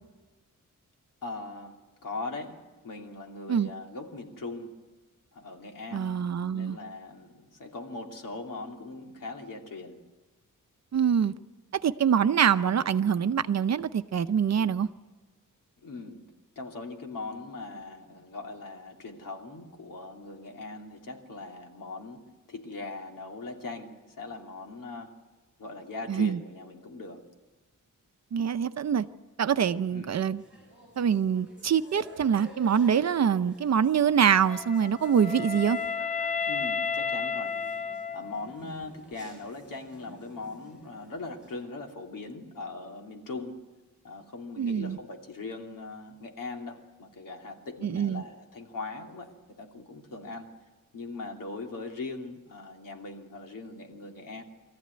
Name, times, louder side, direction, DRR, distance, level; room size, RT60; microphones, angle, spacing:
voice 1, 1.2-4.8 5.3-6.1 6.5-10.0 15.8-16.2 16.6-25.1 25.6-27.2 29.9-30.2 36.5-37.8 38.1-43.6 44.0-50.5 50.9-54.4, left 3 dB, 80° left, 2 dB, 2.8 m, -40 dB
voice 2, 5.9-6.8 10.9-11.3 11.7-14.9 26.1-26.4 28.3-29.1 29.4-30.4 31.0-35.8 44.6-45.0 47.8-48.2, right 7 dB, 55° right, 11 dB, 0.7 m, -25 dB
sound 1, 30.4-41.6, right 2 dB, 5° right, 7.2 m, -53 dB
Wind instrument woodwind instrument, 34.5-38.7, left 5 dB, 25° left, 0.7 m, -32 dB
23.5 x 14.5 x 9.6 m, 1.3 s
wide cardioid pair, 175°, 32 cm